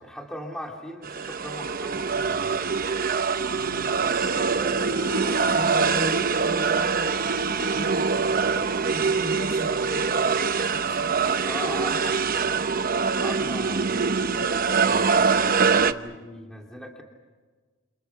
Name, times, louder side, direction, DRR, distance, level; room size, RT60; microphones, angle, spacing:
voice 1, 0.0-2.7 11.4-12.2 13.2-17.0, equal, 5° left, 1 dB, 2.9 m, -39 dB
sound 1, 1.0-15.9, right 5 dB, 45° right, 0.9 m, -24 dB
voice 2, 3.5-4.0 4.3-11.2 11.5-12.9, left 1 dB, 70° left, 5 dB, 7.6 m, -39 dB
29.5 x 29.0 x 5.9 m, 1.4 s
head